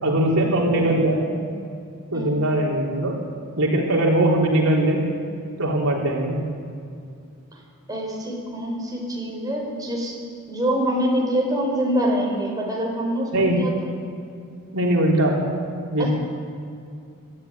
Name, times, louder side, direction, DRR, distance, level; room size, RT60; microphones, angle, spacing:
voice 1, 0.0-1.3 2.1-3.2 3.6-5.0 5.6-6.4 13.3-13.6 14.7-15.4 15.9-16.1, right 1 dB, 70° right, -2 dB, 3.9 m, -20 dB
voice 2, 7.9-10.2 10.5-13.7 16.0-16.1, equal, 15° right, -2 dB, 5.7 m, -25 dB
25.5 x 13.5 x 9.8 m, 2.4 s
head